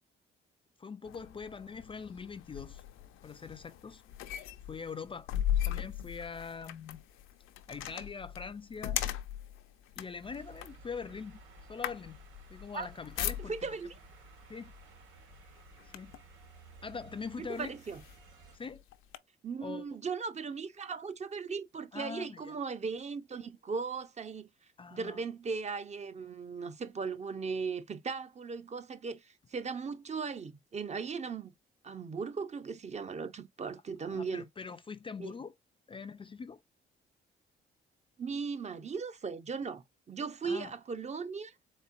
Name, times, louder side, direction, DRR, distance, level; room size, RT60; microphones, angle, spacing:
voice 1, 0.8-2.8 3.2-4.0 4.7-5.3 5.6-7.0 7.7-9.0 10.0-11.4 11.7-12.2 12.5-13.5 14.5-14.7 15.8-16.1 16.8-17.7 18.5-18.8 19.6-20.0 21.9-22.5 24.8-25.2 34.0-35.5 35.9-36.6 40.4-40.7, left 5 dB, 25° left, 0.4 m, -43 dB
sound 1, 1.0-13.9 14.7-14.9 15.3-16.3 17.0-17.1 17.5-19.2, left 11 dB, 90° left, 0.6 m, -38 dB
sound 2, 10.2-18.6, right 3 dB, 90° right, 3.0 m, -56 dB
voice 2, 13.5-14.0 17.4-18.0 19.4-24.5 24.9-31.5 31.8-34.4 35.2-35.3 38.2-41.5, right 5 dB, 35° right, 0.7 m, -38 dB
4.2 x 3.5 x 2.6 m
cardioid pair, 90°, 20 cm